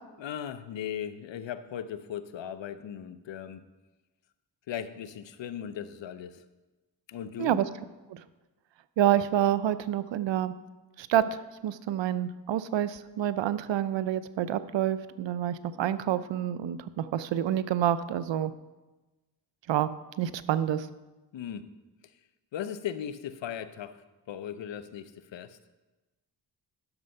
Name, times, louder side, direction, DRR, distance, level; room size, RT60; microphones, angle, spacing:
voice 1, 0.2-3.6 4.7-6.4 7.1-7.6 21.3-21.6 22.5-24.0 24.3-25.6, left 9 dB, 80° left, 12 dB, 0.7 m, -37 dB
voice 2, 9.0-10.5 11.0-18.5 19.7-19.9 20.2-20.9, right 11 dB, 85° right, 14 dB, 0.6 m, -28 dB
11.0 x 6.7 x 5.4 m, 1.1 s
cardioid pair, 60°, 43 cm